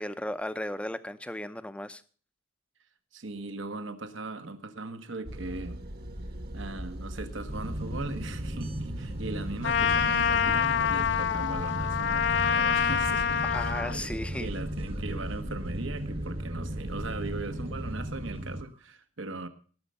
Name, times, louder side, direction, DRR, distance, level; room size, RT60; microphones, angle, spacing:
voice 1, 0.0-2.0 13.4-14.5, left 1 dB, 5° left, 12 dB, 0.6 m, -35 dB
voice 2, 3.1-5.8 6.5-19.5, right 2 dB, 75° right, 9 dB, 1.2 m, -39 dB
sound 1, 5.2-18.0, right 1 dB, 50° right, 1.4 m, -40 dB
sound 2, 7.5-18.7, right 1 dB, 30° right, 1.1 m, -37 dB
Trumpet, 9.6-14.0, left 7 dB, 60° left, 0.6 m, -26 dB
18.5 x 6.7 x 5.5 m, 0.42 s
head